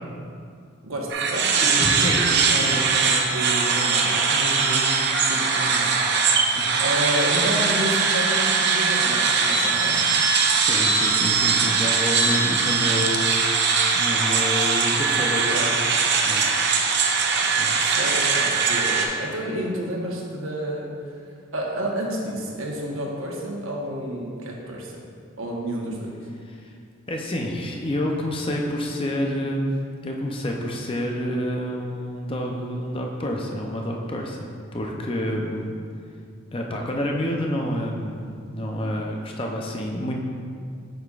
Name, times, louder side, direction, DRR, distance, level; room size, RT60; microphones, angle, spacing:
voice 1, 0.8-5.9 6.8-10.0 17.8-21.2 21.5-25.0 25.4-26.1, right 1 dB, 75° right, -2 dB, 1.1 m, -30 dB
sound 1, 1.1-19.1, right 5 dB, 55° right, 0.6 m, -21 dB
voice 2, 1.6-2.7 6.5-6.8 10.3-13.4 13.9-16.5 17.6-17.8 26.5-26.7 27.1-29.7 30.0-35.7 36.5-40.2, equal, 25° left, 0 dB, 0.5 m, -28 dB
7.9 x 6.9 x 2.4 m, 2.3 s
head